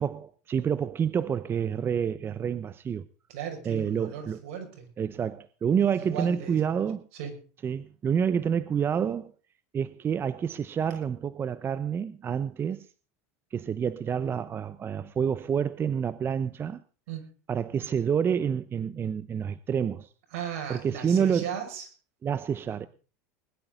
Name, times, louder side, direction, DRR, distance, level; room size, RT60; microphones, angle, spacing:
voice 1, 0.0-3.1 3.6-4.4 5.0-7.0 7.6-9.3 9.7-12.9 13.5-16.8 17.5-20.1 20.7-21.5 22.2-22.9, right 7 dB, 30° right, 0.8 m, -28 dB
voice 2, 3.3-4.9 5.9-6.8 7.1-7.4 17.1-17.3 20.3-21.9, right 8 dB, 70° right, 5.9 m, -37 dB
21.0 x 12.0 x 3.9 m
supercardioid pair, 110°, 8 cm